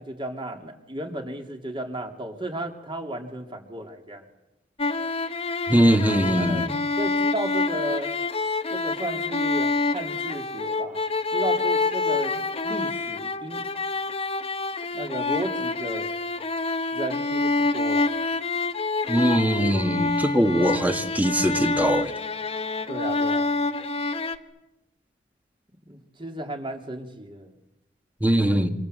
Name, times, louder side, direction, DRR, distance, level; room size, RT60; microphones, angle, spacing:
voice 1, 0.0-4.3 6.4-6.7 7.0-8.1 8.7-11.0 11.3-13.7 14.9-16.1 16.9-18.1 20.5-20.6 22.9-23.5 25.9-27.5, right 1 dB, 25° right, 4 dB, 3.2 m, -34 dB
sound 1, 4.8-24.4, left 3 dB, 30° left, 1.3 m, -27 dB
voice 2, 5.7-6.7 19.1-22.1 28.2-28.7, equal, 10° right, 6 dB, 1.9 m, -21 dB
27.5 x 26.0 x 8.1 m, 0.95 s
head